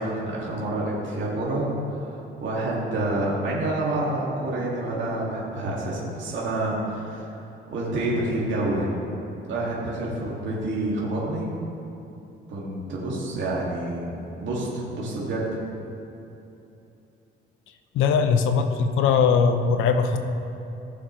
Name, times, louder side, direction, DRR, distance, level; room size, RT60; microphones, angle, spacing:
voice 1, 0.0-1.7 2.0-2.1 2.4-7.2 7.7-8.9 9.5-11.5 12.5-14.1 14.4-15.5, right 2 dB, 70° right, -6 dB, 2.1 m, -28 dB
voice 2, 17.9-20.2, left 6 dB, 85° left, 7 dB, 0.8 m, -20 dB
17.5 x 6.4 x 3.1 m, 2.9 s
cardioid pair, 90°, 20 cm